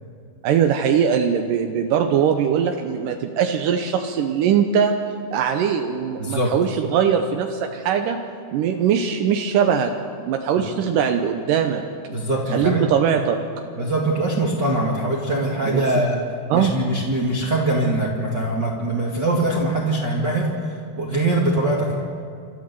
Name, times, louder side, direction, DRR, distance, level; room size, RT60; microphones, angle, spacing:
voice 1, 0.4-5.0 5.3-8.2 8.5-9.9 10.2-11.8 12.5-13.4 15.7-15.9 16.5-16.7, right 8 dB, 80° right, 5 dB, 2.0 m, -21 dB
voice 2, 6.2-6.5 12.1-12.8 13.8-16.2 16.5-20.5 21.0-21.9, right 1 dB, 40° right, -4 dB, 1.7 m, -22 dB
29.0 x 13.5 x 6.8 m, 2.4 s
omnidirectional pair, 4.7 m